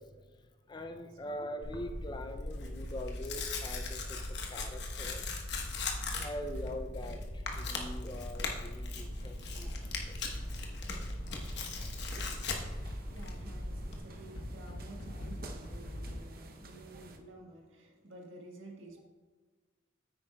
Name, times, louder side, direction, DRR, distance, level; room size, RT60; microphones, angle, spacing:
voice 1, 0.0-5.3 6.2-10.2 11.3-11.5, left 1 dB, 20° left, 6 dB, 0.4 m, -43 dB
voice 2, 0.8-1.3 13.0-19.0, right 2 dB, 75° right, 0 dB, 1.6 m, -52 dB
Tearing, 1.6-14.0, left 2 dB, 55° left, 1.1 m, -39 dB
sound 1, 5.1-16.2, equal, 75° left, 1.3 m, -47 dB
sound 2, 8.9-17.2, right 2 dB, 45° right, 0.7 m, -52 dB
9.8 x 8.9 x 2.3 m, 1.4 s
head